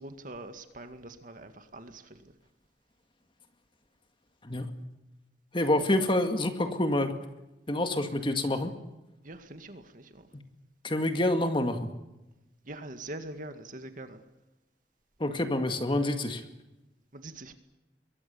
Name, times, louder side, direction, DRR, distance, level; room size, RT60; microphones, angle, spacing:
voice 1, 0.0-2.3 9.2-10.3 12.6-14.2 17.1-17.5, right 2 dB, 50° right, 8 dB, 2.0 m, -43 dB
voice 2, 5.5-7.2 7.7-8.7 10.3-10.4 10.8-11.9 15.2-16.4, left 1 dB, 30° left, 7 dB, 2.0 m, -27 dB
26.5 x 22.5 x 7.1 m, 0.99 s
head